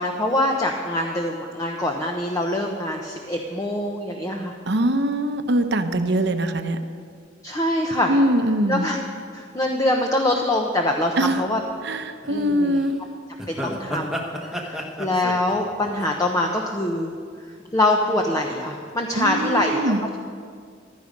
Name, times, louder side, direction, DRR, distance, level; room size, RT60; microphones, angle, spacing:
voice 1, 0.0-4.6 7.4-8.2 8.7-9.0 9.3-11.6 12.3-12.8 13.5-17.1 17.7-19.9, left 1 dB, 20° left, 2 dB, 0.9 m, -24 dB
voice 2, 4.7-6.8 8.1-8.8 11.2-11.4 11.8-12.9 19.2-20.0, right 1 dB, 65° right, 8 dB, 0.9 m, -22 dB
sound 1, 12.2-12.5 12.7-12.9 13.4-17.0 17.4-17.8 18.4-18.9 19.2-19.3, equal, 5° right, 1.2 m, -32 dB
15.0 x 12.5 x 5.3 m, 2.1 s
head